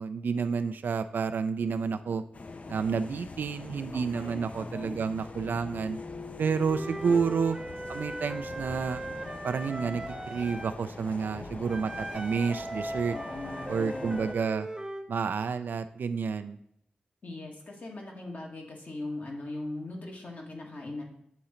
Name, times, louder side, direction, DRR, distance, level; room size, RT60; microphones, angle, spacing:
voice 1, 0.0-2.2 2.7-6.0 6.4-7.6 7.9-9.0 9.4-13.1 13.7-14.7 15.1-16.6, right 5 dB, 80° right, 10 dB, 0.3 m, -30 dB
sound 1, 2.3-14.3, left 3 dB, 45° left, 0.5 m, -43 dB
voice 2, 3.9-5.0 13.1-14.2 17.2-21.0, left 2 dB, 60° left, 0 dB, 1.7 m, -40 dB
Wind instrument woodwind instrument, 6.7-10.7 11.7-15.1, right 1 dB, 20° right, 0.7 m, -38 dB
8.2 x 3.8 x 4.3 m, 0.74 s
cardioid pair, 60°, 3 cm